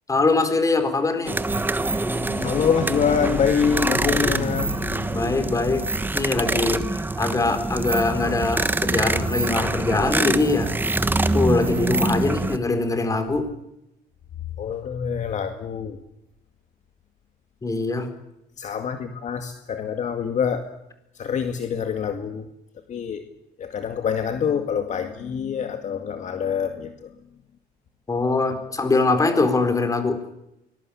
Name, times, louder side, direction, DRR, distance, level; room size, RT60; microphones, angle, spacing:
voice 1, 0.1-1.3 5.1-5.8 6.1-6.8 7.2-10.7 11.3-13.4 17.6-18.0 28.1-30.1, left 3 dB, 20° left, 4.3 m, -22 dB
sound 1, 1.3-12.6, right 2 dB, 10° right, 1.3 m, -25 dB
voice 2, 2.1-5.1 14.6-16.0 18.6-20.6 21.2-22.4 22.9-23.2 23.6-27.1, left 7 dB, 45° left, 2.1 m, -25 dB
24.0 x 21.0 x 8.7 m
cardioid pair, 140°, 17 cm